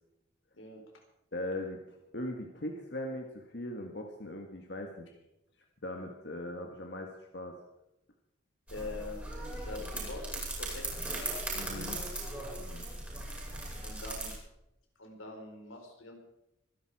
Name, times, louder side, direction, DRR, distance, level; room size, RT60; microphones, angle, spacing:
voice 1, 1.3-1.8 2.1-5.2 5.8-7.6 11.5-12.0 12.6-12.9, left 1 dB, 55° left, 2 dB, 1.7 m, -39 dB
voice 2, 8.7-9.2 9.6-11.3 13.8-14.3 15.0-16.1, left 2 dB, 90° left, 2 dB, 4.5 m, -44 dB
sound 1, 8.7-14.3, right 1 dB, 10° right, 6.5 m, -38 dB
25.0 x 11.0 x 4.9 m, 0.88 s
head